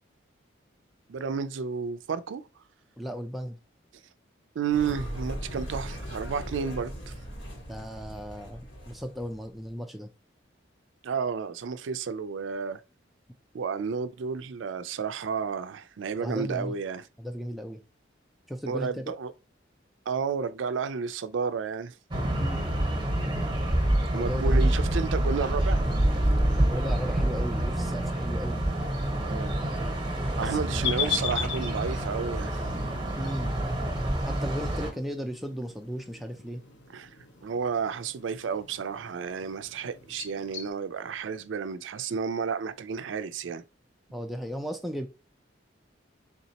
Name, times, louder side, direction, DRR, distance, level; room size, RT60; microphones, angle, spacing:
voice 1, 1.1-2.4 4.6-7.1 11.0-12.8 13.5-17.0 18.7-19.3 20.1-21.9 24.1-25.8 29.2-29.5 30.4-32.6 36.9-37.1 37.4-43.6, right 6 dB, 80° right, 0.4 m, -31 dB
voice 2, 3.0-3.6 7.7-10.1 16.2-16.7 17.2-17.8 18.5-19.0 22.3-22.6 24.1-24.7 26.5-28.6 30.4-30.6 31.0-31.1 33.2-33.5 34.2-36.6 44.1-45.1, equal, ahead, 0.4 m, -36 dB
sound 1, 4.7-9.6, equal, 85° left, 1.9 m, -39 dB
sound 2, 22.1-34.9, right 1 dB, 25° right, 0.9 m, -27 dB
sound 3, 30.8-40.7, left 9 dB, 65° left, 0.7 m, -39 dB
4.1 x 3.6 x 2.8 m
head